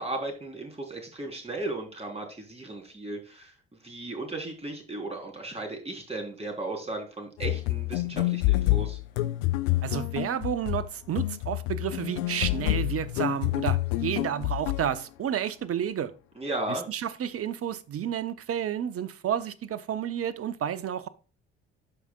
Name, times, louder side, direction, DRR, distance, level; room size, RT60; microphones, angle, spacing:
voice 1, 0.0-3.5 3.8-9.0 16.4-16.9, right 2 dB, 20° right, 3.7 m, -35 dB
sound 1, 7.4-15.0, left 18 dB, 75° left, 0.5 m, -28 dB
voice 2, 9.8-16.1 16.7-21.1, right 9 dB, 45° right, 0.9 m, -31 dB
13.0 x 5.0 x 2.4 m
hypercardioid pair, 50°, 32 cm